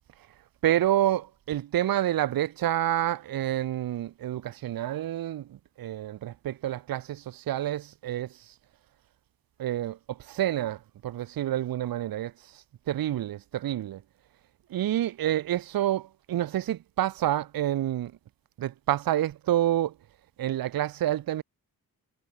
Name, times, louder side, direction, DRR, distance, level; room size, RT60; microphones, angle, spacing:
voice 1, 0.6-8.3 9.6-10.8 11.0-12.3 12.9-14.0 14.7-18.1 18.6-19.9 20.4-21.4, right 12 dB, 65° right, 0.6 m, -28 dB
cardioid pair, 50°, 37 cm